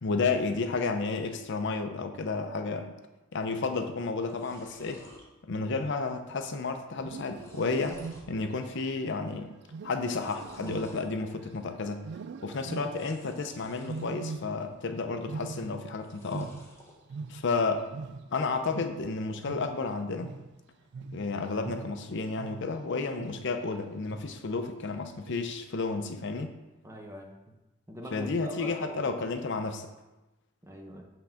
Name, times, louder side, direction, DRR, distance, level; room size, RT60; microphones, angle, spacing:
voice 1, 0.0-3.0 3.3-5.0 5.4-8.0 8.3-9.6 9.8-12.0 12.4-16.5 17.3-17.8 18.3-20.3 21.1-26.5 28.1-29.9, left 4 dB, 60° left, 7 dB, 0.6 m, -31 dB
sound 1, 3.7-3.8 4.0-5.2 5.7-6.1 6.4-6.5 7.0-8.3 8.8-9.2 10.0-11.0 12.8-14.2 14.6-15.2 15.9-17.0, left 1 dB, 15° left, 1.3 m, -54 dB
Wild animals, 6.9-8.6 9.7-11.6 12.0-13.2 13.8-14.9 15.1-17.7 17.9-22.8 23.2-23.6 24.1-24.5 25.2-25.7, right 4 dB, 55° right, 0.3 m, -42 dB
voice 2, 26.8-27.6 27.9-29.1 30.6-31.1, equal, 15° right, 1 dB, 0.9 m, -43 dB
8.2 x 3.8 x 5.7 m, 1.0 s
head